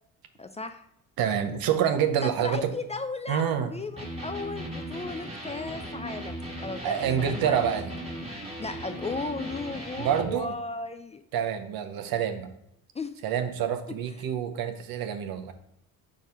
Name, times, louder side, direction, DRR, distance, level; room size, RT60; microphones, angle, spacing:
voice 1, 0.4-0.9 2.2-7.6 8.6-11.2 12.9-13.1, left 3 dB, 20° left, 9 dB, 0.3 m, -36 dB
voice 2, 1.2-2.7 3.3-3.7 6.8-8.0 10.0-10.5 11.3-12.5 13.2-15.5, right 8 dB, 75° right, 8 dB, 0.8 m, -27 dB
Electric guitar, 3.9-10.4, right 1 dB, 15° right, 1.6 m, -37 dB
4.7 x 3.7 x 5.5 m, 0.78 s
cardioid pair, 80°, 36 cm